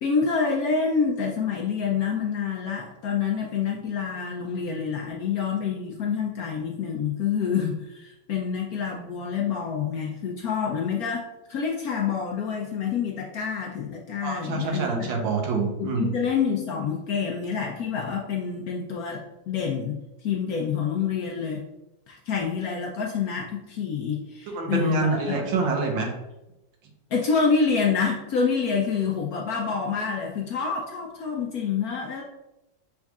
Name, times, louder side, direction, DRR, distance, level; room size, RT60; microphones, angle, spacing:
voice 1, 0.0-15.1 15.8-21.6 22.1-25.3 27.1-32.2, left 6 dB, 70° left, 0 dB, 0.9 m, -27 dB
voice 2, 14.2-16.1 24.5-26.1, right 3 dB, 80° right, 2 dB, 1.6 m, -26 dB
6.3 x 3.6 x 2.3 m, 0.93 s
omnidirectional pair, 2.1 m